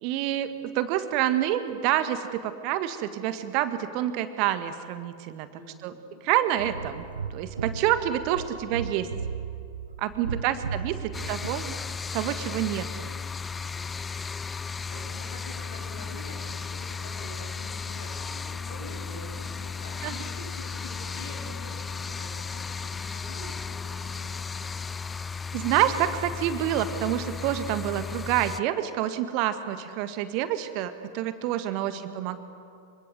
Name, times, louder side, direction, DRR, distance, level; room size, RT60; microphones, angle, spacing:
voice 1, 0.0-5.5 5.8-5.9 6.2-9.1 10.0-11.0 11.3-11.7 12.1-13.1 20.0-20.1 25.5-32.4, right 12 dB, 45° right, 10 dB, 1.6 m, -27 dB
voice 2, 5.6-6.2 8.7-9.1 10.1-10.7 11.1-11.4 13.5-14.0 14.9-25.7 31.9-32.2, left 1 dB, 65° left, 2 dB, 7.8 m, -47 dB
sound 1, 6.6-11.7, right 6 dB, 75° right, 1.1 m, -36 dB
sound 2, 11.1-28.6, left 5 dB, 15° left, 0.5 m, -35 dB
26.5 x 24.5 x 7.6 m, 2.4 s
figure-of-eight pair, 90°, 0 cm